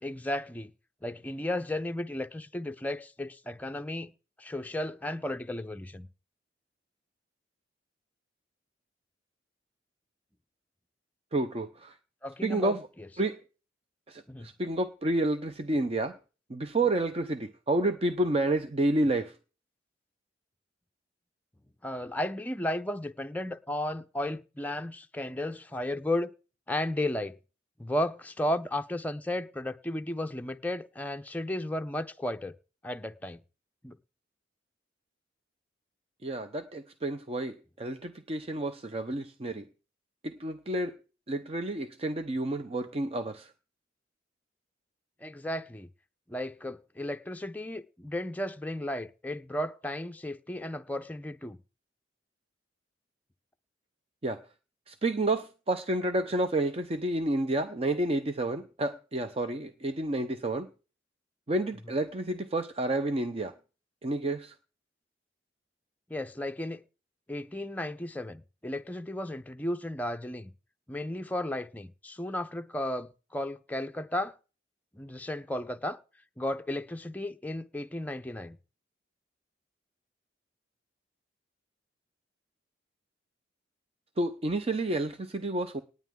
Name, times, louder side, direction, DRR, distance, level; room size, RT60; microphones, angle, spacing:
voice 1, 0.0-0.7 1.0-4.1 4.4-6.1 12.2-13.1 14.3-14.5 21.8-26.3 26.7-27.4 27.8-32.5 32.8-33.4 33.8-34.0 45.2-45.9 46.3-51.6 66.1-66.8 67.3-70.5 70.9-74.3 74.9-76.0 76.4-78.6, left 1 dB, 10° left, 0.6 m, -34 dB
voice 2, 11.3-11.9 12.4-12.8 13.2-13.4 14.1-16.2 16.5-19.3 36.2-39.6 40.2-40.9 41.3-43.5 54.2-54.4 54.9-60.7 61.5-63.5 64.0-64.5 84.2-85.8, right 2 dB, 35° right, 0.7 m, -30 dB
18.5 x 9.3 x 3.7 m
head